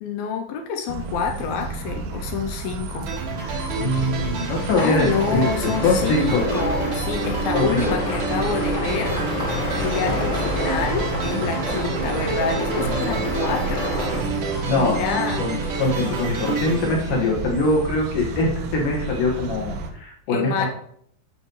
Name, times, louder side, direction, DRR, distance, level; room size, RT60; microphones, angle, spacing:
voice 1, 0.0-3.1 4.8-9.2 9.8-13.9 14.7-15.5 20.3-20.7, left 6 dB, 80° left, 3 dB, 2.5 m, -27 dB
sound 1, 0.9-19.9, right 4 dB, 85° right, 2.6 m, -32 dB
sound 2, 3.1-17.9, right 4 dB, 60° right, 1.4 m, -29 dB
voice 2, 3.8-6.4 7.5-7.9 14.6-20.7, left 2 dB, 65° left, -1 dB, 3.1 m, -23 dB
sound 3, 4.7-14.2, left 1 dB, 45° left, 0.9 m, -29 dB
9.7 x 6.5 x 3.2 m, 0.66 s
omnidirectional pair, 4.3 m